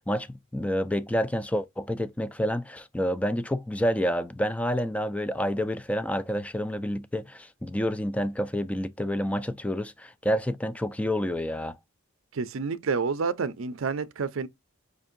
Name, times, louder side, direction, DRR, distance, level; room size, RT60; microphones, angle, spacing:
voice 1, 0.0-11.8, equal, 5° left, 0.3 m, -28 dB
voice 2, 12.3-14.5, right 5 dB, 65° right, 0.5 m, -29 dB
5.1 x 2.6 x 2.5 m
head